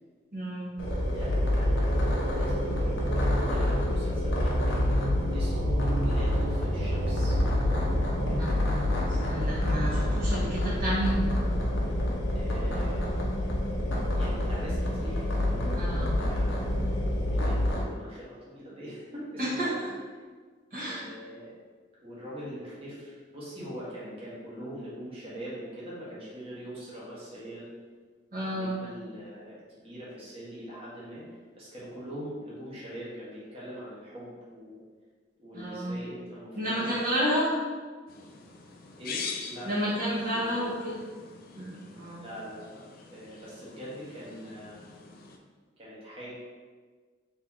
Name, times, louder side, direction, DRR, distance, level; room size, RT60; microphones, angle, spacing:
voice 1, 0.3-0.8 8.3-11.3 15.7-16.2 19.4-19.9 20.7-21.0 28.3-28.8 35.5-36.0 36.5-37.5 39.6-41.0 41.6-42.3, equal, 45° right, -10 dB, 1.1 m, -31 dB
sound 1, 0.8-17.8, left 1 dB, 85° left, 0.8 m, -27 dB
voice 2, 1.1-7.3 12.3-13.2 13.7-16.6 17.3-19.9 20.8-21.5 22.0-27.7 28.4-31.2 31.5-34.8 35.4-37.0 37.4-37.5 39.0-40.8 42.2-42.8 43.1-44.8 45.8-46.3, equal, 30° right, -8 dB, 1.3 m, -43 dB
sound 2, 1.2-8.4, right 2 dB, 70° right, 0.5 m, -33 dB
sound 3, 38.1-45.4, left 5 dB, 50° left, 0.4 m, -43 dB
3.3 x 2.9 x 3.6 m, 1.5 s
head